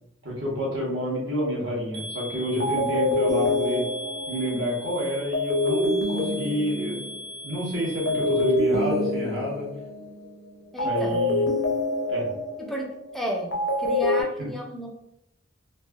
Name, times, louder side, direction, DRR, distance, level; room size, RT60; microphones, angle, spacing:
voice 1, 0.2-3.9 4.3-7.0 7.4-9.7 10.8-11.5 12.1-12.3 14.4-14.5, equal, 75° right, -4 dB, 1.0 m, -29 dB
sound 1, 1.9-8.5, left 1 dB, 60° right, 0.7 m, -39 dB
sound 2, 2.1-2.3 2.6-7.5 8.1-10.3 10.8-14.2, left 1 dB, 85° left, 0.6 m, -26 dB
voice 2, 10.7-11.2 12.6-12.9 13.1-13.5 13.8-14.9, equal, ahead, -1 dB, 0.4 m, -32 dB
3.2 x 2.3 x 2.2 m, 0.81 s
head